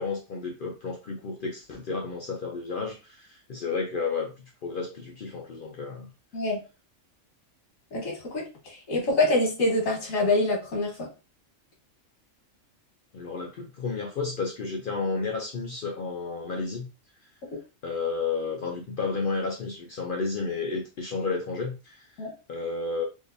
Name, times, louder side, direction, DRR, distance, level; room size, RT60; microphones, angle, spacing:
voice 1, 0.0-4.3 4.6-6.1 13.1-16.9 17.8-23.0, left 4 dB, 55° left, 0 dB, 0.6 m, -32 dB
voice 2, 7.9-11.1 22.2-22.3, left 2 dB, 85° left, -1 dB, 1.7 m, -26 dB
3.7 x 2.5 x 2.5 m, 0.30 s
omnidirectional pair, 1.4 m